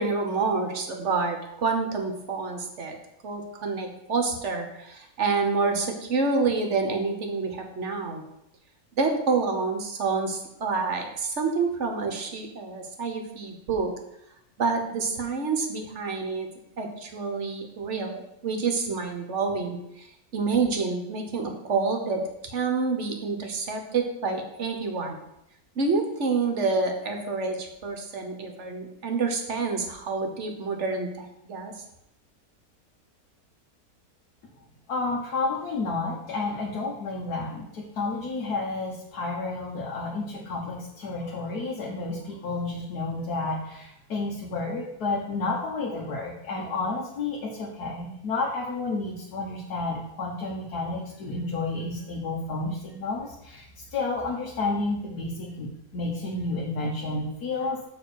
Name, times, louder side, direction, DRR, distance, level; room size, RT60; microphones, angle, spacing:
voice 1, 0.0-3.0 3.2-8.2 8.9-13.9 14.6-16.5 16.8-20.1 20.3-25.2 25.8-31.7, right 4 dB, 55° right, 4 dB, 1.2 m, -28 dB
voice 2, 34.9-53.7 53.9-57.9, left 3 dB, 80° left, -2 dB, 1.6 m, -31 dB
6.9 x 3.7 x 6.3 m, 0.80 s
omnidirectional pair, 1.7 m